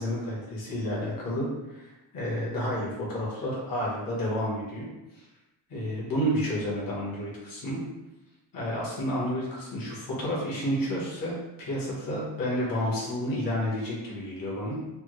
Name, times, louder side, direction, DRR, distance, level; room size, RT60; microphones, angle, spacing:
voice 1, 0.0-4.9 5.1-5.2 5.7-7.8 8.5-14.8, equal, 50° left, -6 dB, 1.2 m, -30 dB
3.4 x 2.0 x 3.0 m, 1.0 s
cardioid pair, 150°, 44 cm